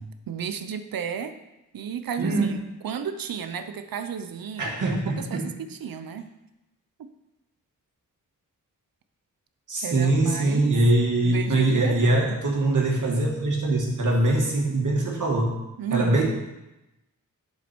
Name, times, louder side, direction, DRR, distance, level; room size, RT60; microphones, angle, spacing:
voice 1, 0.3-1.4 1.7-6.3 7.0-7.1 9.8-10.8 11.2-12.4 15.8-16.2, right 7 dB, 85° right, 10 dB, 0.8 m, -33 dB
voice 2, 2.2-2.5 4.6-5.2 9.7-15.5 15.9-16.2, right 2 dB, 60° right, -2 dB, 2.4 m, -22 dB
10.5 x 7.0 x 4.6 m, 0.97 s
wide cardioid pair, 130°, 34 cm